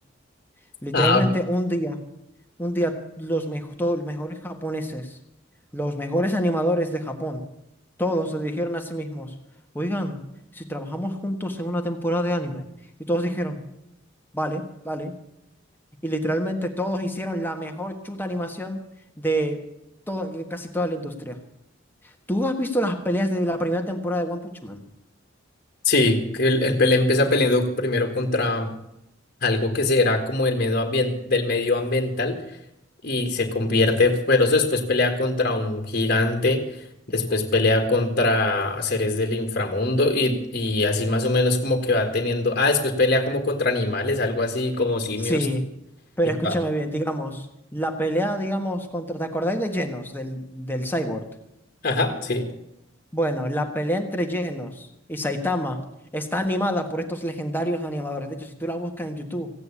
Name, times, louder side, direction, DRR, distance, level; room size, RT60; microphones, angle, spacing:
voice 1, 0.8-2.0 2.6-5.2 5.7-7.4 8.0-9.3 9.7-10.2 10.5-12.6 13.0-13.6 14.3-15.1 16.0-18.8 19.2-19.6 20.1-21.4 22.3-24.8 45.2-45.6 46.2-47.5 47.7-51.3 53.1-55.8 56.1-59.5, equal, 10° left, 4 dB, 1.5 m, -27 dB
voice 2, 25.8-28.7 29.4-32.4 33.0-36.6 37.1-45.5 46.4-46.5 51.8-52.5, left 2 dB, 45° left, 4 dB, 1.7 m, -22 dB
16.0 x 9.4 x 8.3 m, 0.83 s
head